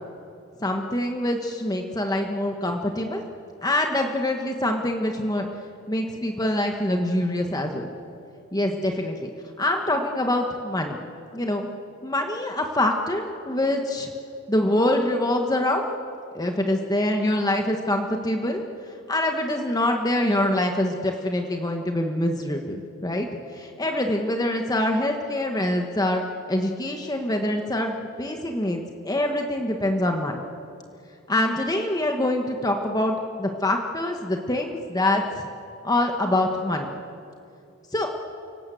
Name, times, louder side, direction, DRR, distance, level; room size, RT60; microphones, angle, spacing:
voice 1, 0.6-3.2 3.6-5.5 5.9-7.9 8.5-9.3 9.6-11.0 11.3-11.7 12.0-14.1 14.5-15.8 16.3-18.6 19.1-30.4 31.3-35.2 35.8-36.9 37.9-38.1, left 1 dB, 20° left, 3 dB, 1.4 m, -25 dB
29.5 x 18.5 x 7.8 m, 2.5 s
head